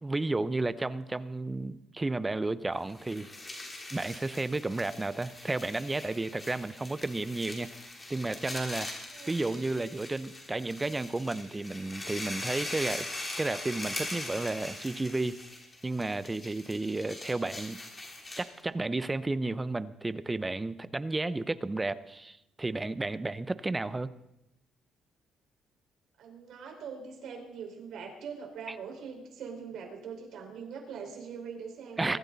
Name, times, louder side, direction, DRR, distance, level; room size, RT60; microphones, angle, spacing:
voice 1, 0.0-3.3 3.9-7.8 8.1-8.9 9.3-13.1 13.4-15.4 15.8-17.8 18.4-24.1 32.0-32.2, right 2 dB, 15° right, 14 dB, 0.6 m, -32 dB
sound 1, 2.8-18.6, left 2 dB, 20° left, 3.5 m, -41 dB
voice 2, 9.1-9.5 26.2-32.2, right 6 dB, 65° right, 1 dB, 4.8 m, -42 dB
23.5 x 14.5 x 4.0 m, 0.89 s
cardioid pair, 145°, 0 cm